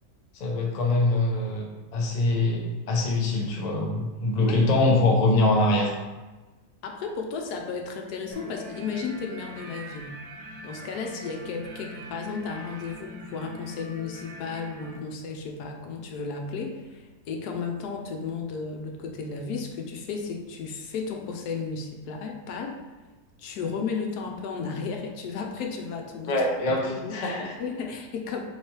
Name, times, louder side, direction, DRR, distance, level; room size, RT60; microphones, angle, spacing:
voice 1, 0.4-5.9 26.3-27.5, left 2 dB, 45° left, -1 dB, 0.5 m, -24 dB
voice 2, 6.8-10.2 10.6-22.8 23.4-26.3 26.7-28.4, left 5 dB, 80° left, 2 dB, 1.2 m, -34 dB
sound 1, 8.3-15.0, equal, 85° right, 1.3 m, -42 dB
3.6 x 3.2 x 4.4 m, 1.2 s
omnidirectional pair, 1.7 m